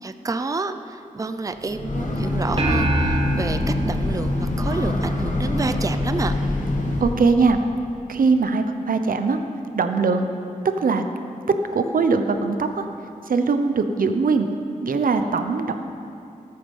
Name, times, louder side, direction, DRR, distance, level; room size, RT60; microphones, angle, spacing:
voice 1, 0.0-6.3, right 3 dB, 25° right, 9 dB, 0.5 m, -29 dB
Breathing / Train, 1.6-7.3, left 2 dB, 60° left, 1.7 m, -25 dB
sound 1, 2.6-5.2, right 2 dB, 40° right, 1.4 m, -26 dB
voice 2, 7.0-7.6 8.1-9.4 9.7-10.3 10.8-11.0 11.7-12.8 13.3-14.5 14.8-15.7, right 4 dB, 90° right, 7 dB, 0.9 m, -21 dB
19.5 x 8.6 x 5.6 m, 2.6 s
wide cardioid pair, 105°, 14 cm